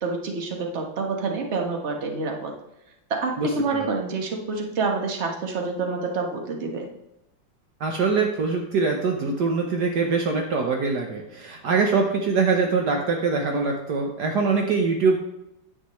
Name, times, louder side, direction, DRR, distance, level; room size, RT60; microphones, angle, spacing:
voice 1, 0.0-2.5 3.1-6.9, right 4 dB, 40° right, 2 dB, 1.5 m, -27 dB
voice 2, 3.4-3.9 7.8-15.2, right 4 dB, 65° right, 2 dB, 1.4 m, -23 dB
10.0 x 8.0 x 3.1 m, 0.88 s
omnidirectional pair, 2.0 m